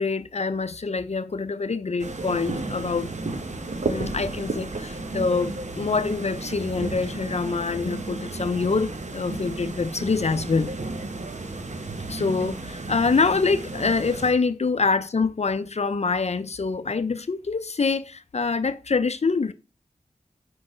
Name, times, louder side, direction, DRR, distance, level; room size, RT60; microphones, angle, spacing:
voice 1, 0.0-3.1 3.9-10.7 12.1-19.5, left 4 dB, 55° left, 0.5 m, -25 dB
sound 1, 2.0-14.3, right 2 dB, 60° right, 1.0 m, -33 dB
6.3 x 4.7 x 4.9 m
wide cardioid pair, 65°, 13 cm